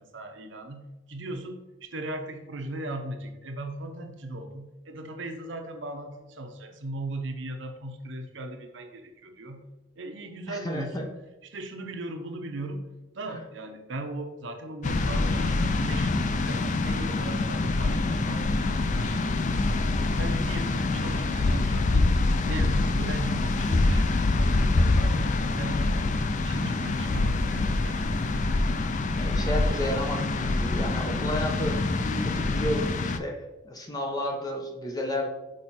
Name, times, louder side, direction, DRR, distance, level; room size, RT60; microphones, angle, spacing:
voice 1, 0.0-9.6 10.0-11.1 11.4-12.8 13.1-19.8 20.2-22.1 22.5-24.1 24.4-26.0 26.4-28.4 28.7-28.9, right 1 dB, 70° right, 5 dB, 0.9 m, -38 dB
voice 2, 10.5-11.0 13.3-13.4 29.1-35.3, equal, 20° left, 1 dB, 1.0 m, -32 dB
sound 1, 14.8-33.2, left 2 dB, 40° left, 0.4 m, -25 dB
6.4 x 4.6 x 4.2 m, 1.1 s
head